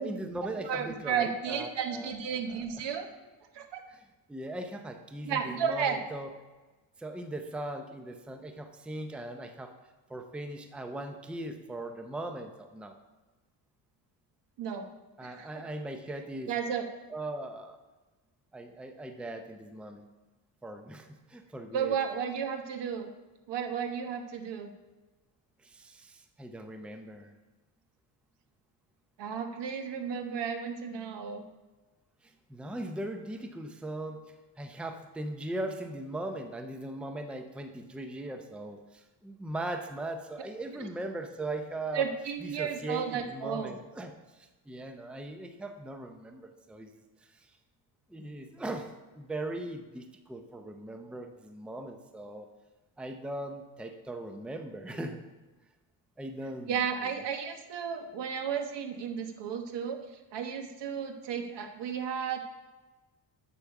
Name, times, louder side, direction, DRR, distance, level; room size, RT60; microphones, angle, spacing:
voice 1, 0.0-2.8 3.9-6.3 7.0-9.7 10.1-12.9 15.2-16.6 17.1-17.8 18.5-20.0 20.6-22.0 25.6-27.3 32.2-47.5 48.1-52.5 53.0-55.2 56.2-57.2, right 1 dB, ahead, 6 dB, 0.6 m, -39 dB
voice 2, 0.6-3.1 3.5-3.8 5.2-6.0 14.6-14.9 15.2-15.5 16.5-16.9 21.7-23.1 23.5-24.7 29.2-31.4 40.8-40.9 41.9-43.7 56.7-60.0 60.3-62.4, right 7 dB, 70° right, 5 dB, 1.2 m, -33 dB
8.3 x 6.8 x 5.8 m, 1.2 s
cardioid pair, 125°, 44 cm